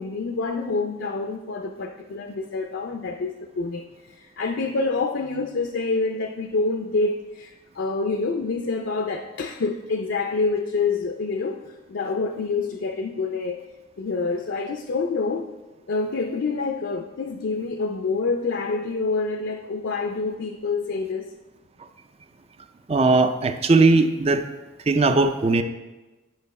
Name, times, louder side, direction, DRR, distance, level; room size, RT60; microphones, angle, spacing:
voice 1, 0.0-3.9 4.2-11.6 11.9-13.6 14.0-15.5 15.9-21.3, left 3 dB, 60° left, 5 dB, 0.4 m, -27 dB
voice 2, 22.9-24.4 24.9-25.6, right 3 dB, 30° right, 9 dB, 0.4 m, -18 dB
8.8 x 5.3 x 4.1 m, 1.2 s
head